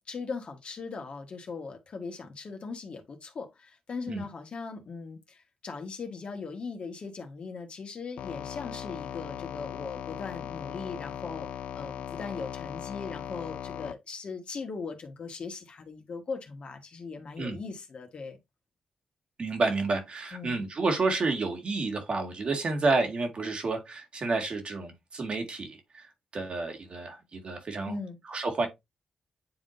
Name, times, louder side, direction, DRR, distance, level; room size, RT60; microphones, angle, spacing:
voice 1, 0.1-11.5 11.7-18.4 20.3-20.7 27.8-28.2, left 4 dB, 60° left, 1.7 m, -39 dB
sound 1, 8.2-13.9, left 9 dB, 85° left, 0.4 m, -38 dB
voice 2, 19.4-27.9 28.3-28.7, right 3 dB, 55° right, 2.2 m, -30 dB
9.6 x 3.7 x 2.7 m
cardioid pair, 60°, 2 cm